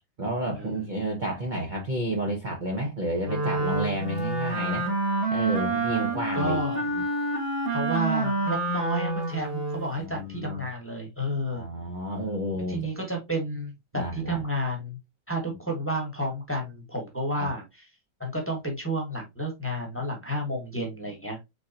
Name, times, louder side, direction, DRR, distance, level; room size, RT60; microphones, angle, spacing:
voice 1, 0.2-4.9 5.3-7.0 9.9-10.6 11.5-12.9 13.9-14.4 17.4-17.5, right 1 dB, 60° right, 0.4 m, -31 dB
Wind instrument woodwind instrument, 3.2-9.9, right 2 dB, 40° right, 1.0 m, -28 dB
voice 2, 5.9-6.8 7.7-11.6 12.7-15.0 15.3-17.6 18.2-21.4, right 1 dB, 10° left, 1.0 m, -31 dB
4.6 x 3.8 x 2.8 m
omnidirectional pair, 2.3 m